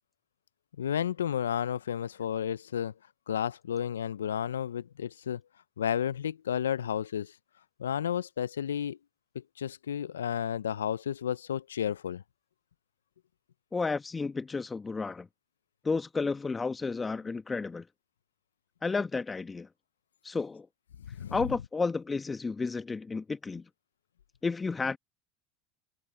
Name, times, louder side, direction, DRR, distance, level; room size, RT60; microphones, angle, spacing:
voice 1, 0.8-2.9 3.3-5.4 5.8-7.3 7.8-9.0 9.3-12.2 21.1-21.4, left 9 dB, 85° left, 0.5 m, -32 dB
voice 2, 13.7-15.3 15.8-17.8 18.8-19.7 20.2-20.7 21.3-23.6 24.4-25.0, left 4 dB, 20° left, 1.2 m, -32 dB
hypercardioid pair, 85°, 0 cm